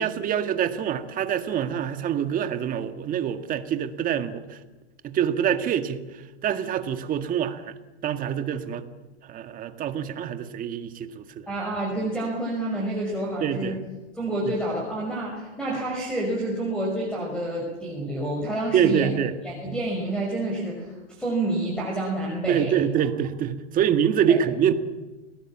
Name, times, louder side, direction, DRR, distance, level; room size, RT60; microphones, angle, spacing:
voice 1, 0.0-4.6 5.0-6.0 6.4-7.7 8.0-8.8 9.3-11.5 13.4-13.8 18.7-19.3 22.5-24.7, right 9 dB, 25° right, 9 dB, 1.8 m, -25 dB
voice 2, 11.5-13.8 14.2-19.1 19.4-22.8 24.3-24.4, right 1 dB, ahead, -1 dB, 5.7 m, -28 dB
30.0 x 19.0 x 7.4 m, 1.2 s
hypercardioid pair, 135°, 36 cm